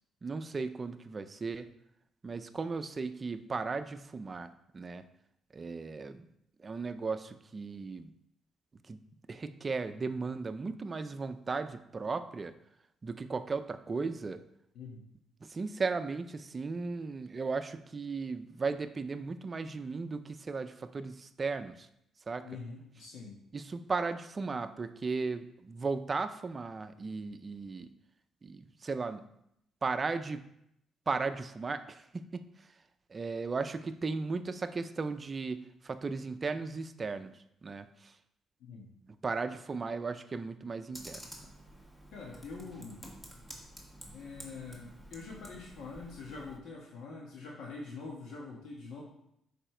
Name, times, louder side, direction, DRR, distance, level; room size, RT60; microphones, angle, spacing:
voice 1, 0.2-1.7 2.2-5.0 5.5-6.3 6.6-8.1 8.9-9.0 9.3-12.5 13.0-14.4 15.4-21.9 22.3-22.5 23.5-27.9 28.4-29.2 29.8-30.4 31.1-32.4 33.1-37.3 37.6-38.1 39.1-41.2, right 4 dB, 35° right, 11 dB, 0.5 m, -36 dB
voice 2, 22.4-23.4 38.6-38.9 42.1-43.0 44.1-49.0, left 4 dB, 80° left, -3 dB, 1.4 m, -44 dB
Computer keyboard, 40.9-46.6, equal, 10° left, 1.6 m, -50 dB
6.8 x 5.1 x 4.4 m, 0.77 s
cardioid pair, 90°, 0 cm